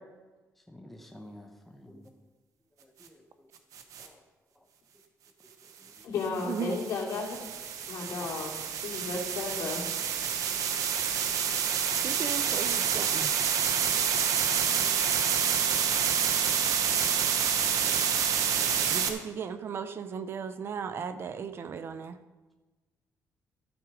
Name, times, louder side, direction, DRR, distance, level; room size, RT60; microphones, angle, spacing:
voice 1, 0.7-2.1 3.0-3.2 4.0-4.2 12.0-12.5 13.5-13.6 13.8-14.0 14.8-15.1 15.6-15.9, left 1 dB, 5° left, 3 dB, 0.8 m, -51 dB
sound 1, 3.8-4.1 6.2-19.1, right 7 dB, 70° right, 1.1 m, -28 dB
voice 2, 6.0-7.4 7.9-8.5 8.8-9.8, left 4 dB, 65° left, -1 dB, 2.8 m, -33 dB
voice 3, 12.0-13.3 18.9-22.1, right 6 dB, 40° right, 11 dB, 0.6 m, -36 dB
12.5 x 8.4 x 5.0 m, 1.2 s
cardioid pair, 180°, 6 cm